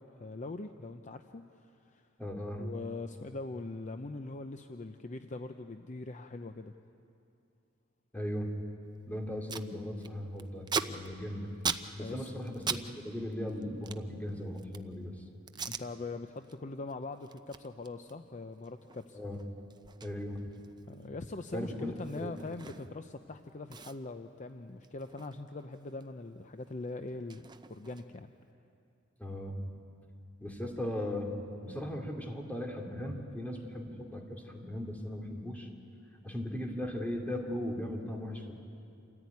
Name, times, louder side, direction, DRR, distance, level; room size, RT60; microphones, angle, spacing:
voice 1, 0.0-2.1 2.6-6.7 12.0-12.3 15.7-19.2 20.9-28.3, left 3 dB, 35° left, 7 dB, 0.6 m, -42 dB
voice 2, 2.2-2.7 8.1-8.5 9.1-11.5 11.9-15.1 19.1-19.4 20.0-20.5 21.5-22.3 29.2-29.6 30.4-31.3 31.6-35.7 36.2-38.5, left 1 dB, 10° left, 1 dB, 2.7 m, -38 dB
Packing tape duct tape, 8.9-9.0 9.2-9.7 10.0-12.9 13.1-14.9 15.5-15.9 16.3-16.5 16.9-23.1 23.4-23.5 23.7-26.1 26.3-28.3, right 5 dB, 20° right, 0.6 m, -41 dB
28.0 x 14.5 x 9.5 m, 2.6 s
head